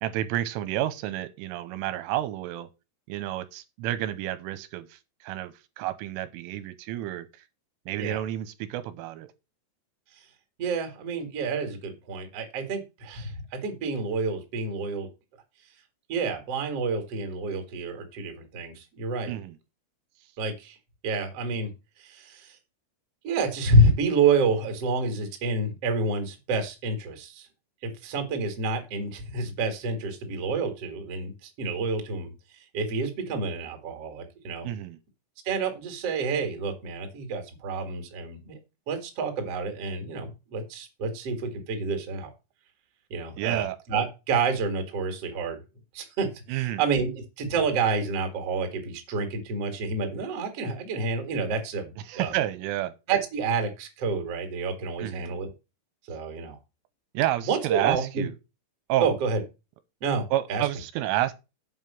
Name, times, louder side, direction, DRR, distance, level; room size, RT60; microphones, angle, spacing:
voice 1, 0.0-2.7 3.1-7.3 7.9-9.3 19.3-19.6 34.6-35.0 43.4-43.8 46.5-46.8 52.1-52.9 55.0-55.3 57.1-58.3 58.9-59.1 60.3-61.3, right 13 dB, 85° right, 3.2 m, -30 dB
voice 2, 10.6-15.1 16.1-19.3 20.4-20.8 21.0-22.6 23.2-27.5 27.8-32.3 32.7-34.7 35.4-38.6 38.9-42.3 43.1-45.6 45.9-52.3 53.1-55.5 56.1-56.6 57.5-58.3 59.0-59.4 60.0-60.6, right 3 dB, 50° right, 1.9 m, -28 dB
8.0 x 5.6 x 7.3 m
omnidirectional pair, 5.9 m